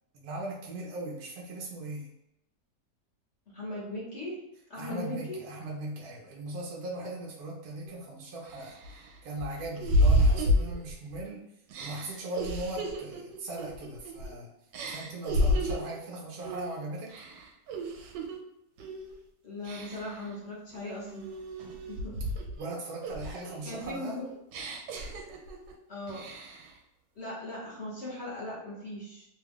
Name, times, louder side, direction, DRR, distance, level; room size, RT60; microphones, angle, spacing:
voice 1, 0.1-2.1 4.8-8.8 9.2-11.4 11.8-14.5 14.9-17.1 22.5-24.3, right 2 dB, 70° right, -2 dB, 1.1 m, -39 dB
voice 2, 3.5-4.4 4.7-5.4 19.4-21.3 21.6-22.2 23.6-24.2 25.9-26.2 27.2-29.3, left 1 dB, 45° left, -6 dB, 1.1 m, -39 dB
sound 1, 7.9-8.0 8.5-11.2 11.7-14.3 14.7-16.0 16.4-16.7 17.1-18.4 18.8-19.1 19.6-20.2 20.7-22.7 23.0-25.7 26.1-26.7, equal, 90° right, 1.2 m, -30 dB
3.1 x 2.3 x 3.5 m, 0.85 s
omnidirectional pair, 1.9 m